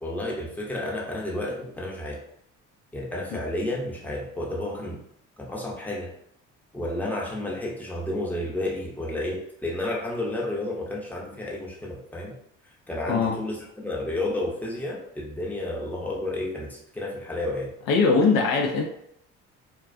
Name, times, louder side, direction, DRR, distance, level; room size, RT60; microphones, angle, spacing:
voice 1, 0.0-2.2 2.9-5.0 5.4-6.1 6.7-12.3 12.9-17.7, left 1 dB, 5° left, -3 dB, 0.7 m, -31 dB
voice 2, 17.9-18.8, left 4 dB, 65° left, 2 dB, 0.5 m, -21 dB
2.3 x 2.1 x 2.5 m, 0.73 s
hypercardioid pair, 60°, 36 cm